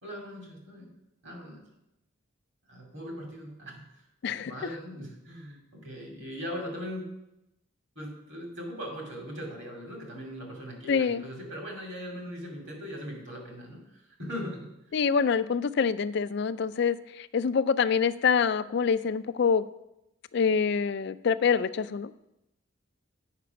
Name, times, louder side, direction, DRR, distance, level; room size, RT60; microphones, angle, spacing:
voice 1, 0.0-0.9 1.2-1.6 2.7-3.8 4.3-7.1 7.9-14.7, equal, 55° right, 1 dB, 2.6 m, -40 dB
voice 2, 4.2-4.5 10.9-11.2 14.9-19.7 20.3-22.2, left 6 dB, 50° left, 14 dB, 0.3 m, -26 dB
8.3 x 5.9 x 5.9 m, 0.87 s
head